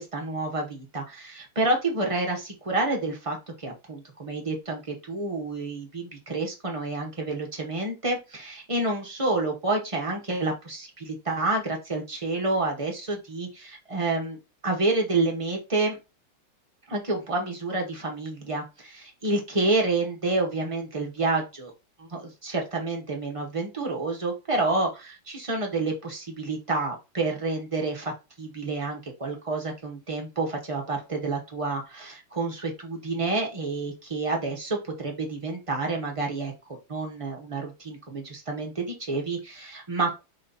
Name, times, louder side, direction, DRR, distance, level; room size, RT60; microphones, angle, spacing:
voice 1, 0.0-14.4 14.6-16.0 16.9-21.7 22.0-28.1 28.4-36.5 36.9-40.2, right 2 dB, 30° right, 0 dB, 0.6 m, -29 dB
4.4 x 2.8 x 3.9 m, 0.27 s
omnidirectional pair, 2.1 m